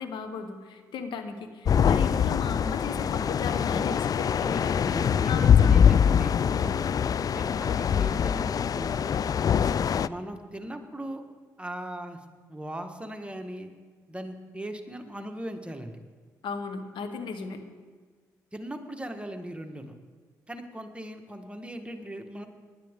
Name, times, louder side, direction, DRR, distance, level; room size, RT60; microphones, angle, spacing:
voice 1, 0.0-4.9 5.3-6.3 16.4-17.6, left 5 dB, 70° left, 7 dB, 1.4 m, -36 dB
sound 1, 1.7-10.1, left 8 dB, 45° left, 0.3 m, -23 dB
voice 2, 4.8-6.8 7.3-9.3 10.1-11.2 11.6-12.2 12.5-13.7 14.1-16.0 18.5-19.9 20.5-22.5, right 1 dB, 15° right, 5 dB, 1.5 m, -39 dB
18.5 x 10.5 x 3.7 m, 1.5 s
hypercardioid pair, 45°, 8 cm